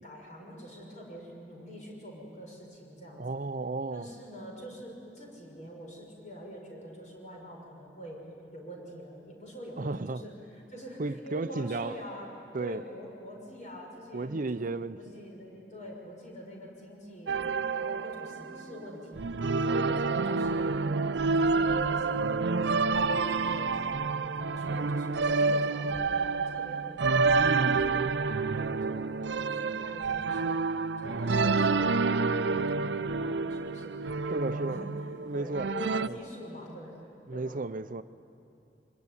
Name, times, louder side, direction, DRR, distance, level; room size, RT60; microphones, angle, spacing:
voice 1, 0.0-3.4 3.9-8.2 8.5-12.3 12.6-14.6 15.0-17.4 17.7-19.2 19.6-20.8 21.3-23.7 24.1-30.6 31.0-34.9 35.3-36.9 37.3-37.6, equal, 45° left, 6.4 m, -45 dB
voice 2, 3.2-4.1 9.8-10.2 11.0-12.0 12.5-12.8 14.1-15.2 27.4-27.8 34.3-34.8 35.2-35.7 36.1-36.2 37.3-38.0, right 3 dB, 50° right, 0.7 m, -33 dB
sound 1, 17.3-18.9 19.2-36.1, right 4 dB, 85° right, 0.6 m, -28 dB
sound 2, 17.5-25.1, equal, ahead, 2.8 m, -51 dB
24.5 x 22.5 x 9.9 m
head